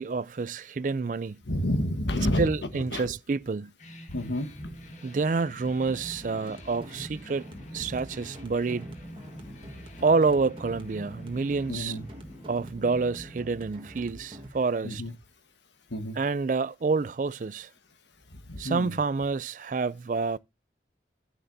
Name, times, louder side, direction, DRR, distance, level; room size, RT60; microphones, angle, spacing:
voice 1, 0.0-1.4 2.4-3.7 5.0-8.9 10.0-12.0 12.5-15.0 16.1-17.7 18.6-20.4, right 4 dB, 45° right, 0.4 m, -28 dB
voice 2, 1.5-3.1 4.1-4.7 11.7-12.0 14.8-15.1 15.9-16.2 18.5-18.9, left 1 dB, 85° left, 1.4 m, -30 dB
sound 1, 3.8-14.3, equal, 40° left, 1.6 m, -46 dB
sound 2, 5.9-14.5, equal, 30° right, 1.5 m, -46 dB
10.0 x 9.2 x 2.7 m
head